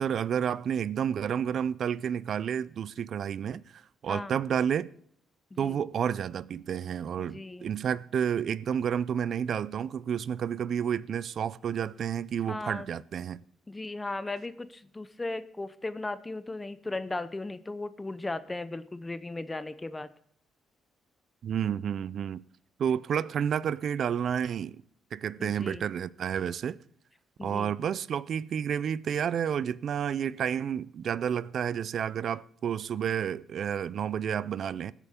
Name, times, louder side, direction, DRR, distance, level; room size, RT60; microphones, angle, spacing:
voice 1, 0.0-4.9 5.6-13.4 21.4-22.4 22.8-24.8 25.1-26.8 27.4-34.9, right 8 dB, 60° right, 0.4 m, -30 dB
voice 2, 7.2-7.7 12.5-12.9 13.7-20.1 25.4-25.8 27.4-27.7, left 2 dB, 20° left, 0.7 m, -37 dB
20.5 x 8.3 x 3.7 m
cardioid pair, 90°, 0 cm